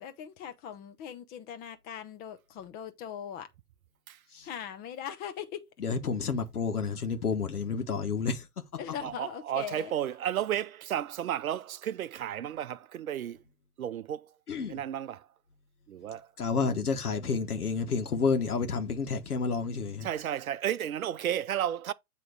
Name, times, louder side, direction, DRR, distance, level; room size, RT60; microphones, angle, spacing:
voice 1, 0.0-3.5 4.4-5.7 8.8-9.9, left 9 dB, 20° left, 0.8 m, -40 dB
voice 2, 5.8-8.5 14.5-14.8 16.4-20.1, left 5 dB, 75° left, 1.4 m, -30 dB
voice 3, 9.0-13.4 13.8-14.3 14.7-15.3 15.9-16.3 16.6-16.7 20.0-21.9, right 10 dB, 65° right, 0.7 m, -33 dB
9.5 x 3.2 x 4.8 m
figure-of-eight pair, 115°, 46 cm